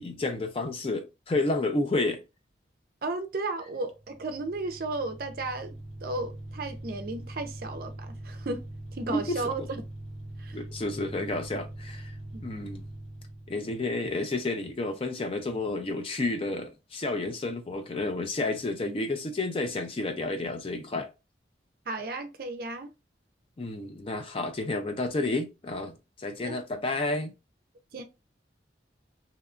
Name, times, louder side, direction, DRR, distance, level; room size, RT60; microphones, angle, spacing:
voice 1, 0.0-2.2 9.1-9.7 10.5-12.1 12.4-12.8 13.5-21.1 23.6-27.3, left 2 dB, 30° left, 0.4 m, -31 dB
voice 2, 3.0-5.7 6.0-8.7 8.9-9.8 10.4-10.6 12.3-12.4 21.9-22.9 26.4-26.6 27.9-28.0, right 2 dB, 50° right, 0.4 m, -34 dB
sound 1, 3.9-13.7, right 1 dB, 60° left, 1.7 m, -42 dB
2.8 x 2.2 x 2.4 m
head